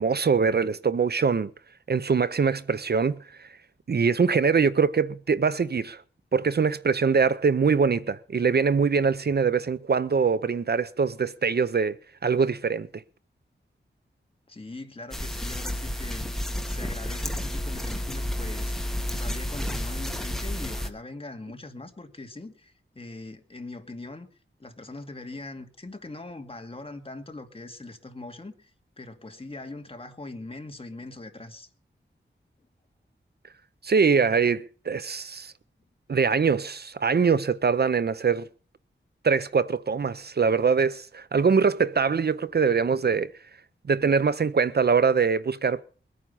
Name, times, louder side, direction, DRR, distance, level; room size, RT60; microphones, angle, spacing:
voice 1, 0.0-1.5 1.9-3.5 3.9-6.0 6.3-13.0 33.8-35.5 36.1-38.5 39.2-43.3 43.9-45.8, right 5 dB, 55° right, 0.6 m, -23 dB
voice 2, 14.5-18.7 19.1-24.3 24.6-31.7, left 2 dB, 30° left, 2.4 m, -41 dB
sound 1, 15.1-20.9, left 1 dB, ahead, 1.9 m, -31 dB
22.0 x 9.4 x 5.6 m
wide cardioid pair, 105°, 20 cm